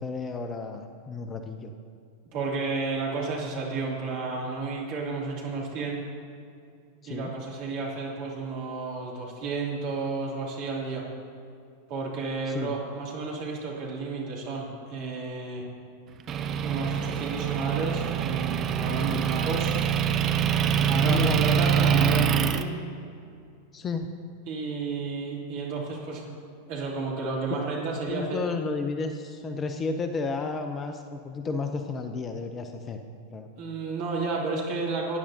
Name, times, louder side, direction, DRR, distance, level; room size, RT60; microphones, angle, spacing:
voice 1, 0.0-1.7 7.0-7.3 12.5-12.8 21.0-21.4 23.7-24.1 28.1-33.0 33.3-33.5, left 4 dB, 20° left, 7 dB, 0.6 m, -32 dB
voice 2, 2.3-6.0 7.1-11.0 11.9-15.6 16.6-19.8 20.9-22.7 24.5-26.2 26.7-28.4 33.6-35.2, right 3 dB, 45° right, -3 dB, 2.8 m, -32 dB
Motor vehicle (road) / Engine, 16.3-22.6, right 8 dB, 30° right, 0.5 m, -25 dB
18.0 x 10.0 x 2.8 m, 2.3 s
figure-of-eight pair, 90°, 0 cm